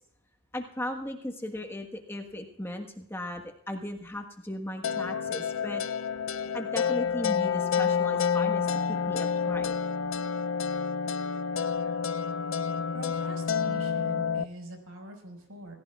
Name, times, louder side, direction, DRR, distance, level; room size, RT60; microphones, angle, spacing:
voice 1, 0.5-5.8 6.5-9.7, left 1 dB, 10° left, 3 dB, 1.4 m, -37 dB
sound 1, 4.8-14.4, left 6 dB, 65° left, 0.5 m, -29 dB
voice 2, 12.9-15.8, right 1 dB, 85° right, 4 dB, 5.1 m, -44 dB
27.0 x 16.0 x 2.4 m, 0.74 s
head